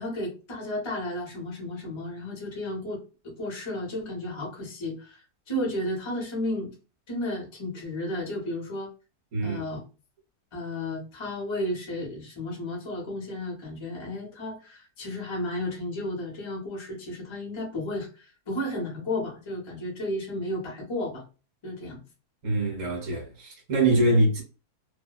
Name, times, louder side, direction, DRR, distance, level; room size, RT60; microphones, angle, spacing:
voice 1, 0.0-6.7 7.1-8.9 9.4-9.8 10.5-21.2 21.6-22.0 24.0-24.2, left 1 dB, 30° left, 0.6 m, -33 dB
voice 2, 22.4-24.4, right 2 dB, 60° right, 1.1 m, -24 dB
2.7 x 2.1 x 2.3 m
omnidirectional pair, 1.6 m